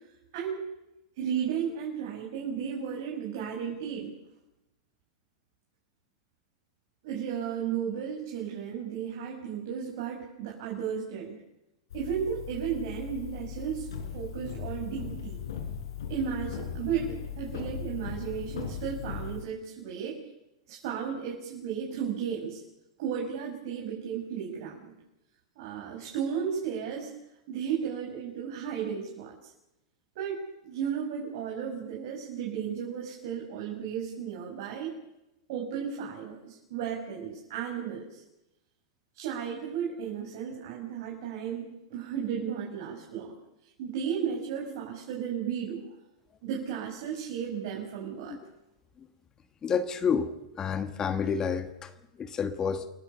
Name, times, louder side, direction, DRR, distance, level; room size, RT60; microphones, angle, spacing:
voice 1, 0.3-0.6 1.2-4.1 7.0-11.3 11.9-15.4 16.1-20.2 20.7-22.6 23.0-24.9 25.6-27.1 27.5-29.5 30.1-34.9 35.5-38.2 39.1-43.3 43.8-45.8 46.4-48.4, right 8 dB, 60° right, -2 dB, 6.4 m, -34 dB
sound 1, 11.9-19.4, left 7 dB, 80° left, 5.5 m, -38 dB
voice 2, 49.6-52.9, left 6 dB, 25° left, 10 dB, 1.6 m, -30 dB
29.0 x 17.0 x 6.9 m, 0.92 s
hypercardioid pair, 120°, 2 cm